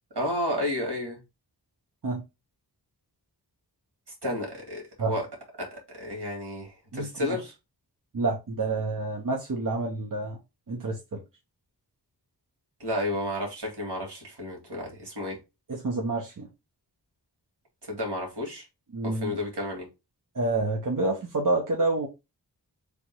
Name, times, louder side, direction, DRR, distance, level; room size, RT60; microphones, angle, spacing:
voice 1, 0.1-1.2 4.2-5.3 5.6-7.5 12.8-15.4 17.9-18.7 19.0-19.8, left 1 dB, 75° right, 2.1 m, -32 dB
voice 2, 6.9-7.4 8.1-10.4 10.7-11.2 15.7-16.5 18.9-19.3 20.3-22.1, right 2 dB, 50° right, 0.9 m, -28 dB
3.4 x 3.0 x 4.5 m
wide cardioid pair, 85°, 41 cm